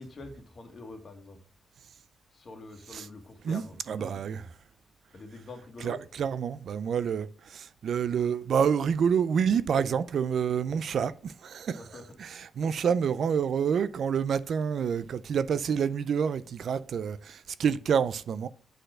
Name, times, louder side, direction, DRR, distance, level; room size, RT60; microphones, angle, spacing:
voice 1, 0.0-1.4 2.3-4.3 5.1-6.0 11.7-12.2, left 2 dB, 35° left, 1.8 m, -45 dB
voice 2, 3.9-4.4 5.8-11.8 12.2-18.5, right 7 dB, 60° right, 0.4 m, -28 dB
7.8 x 4.3 x 6.3 m
wide cardioid pair, 150°, 0 cm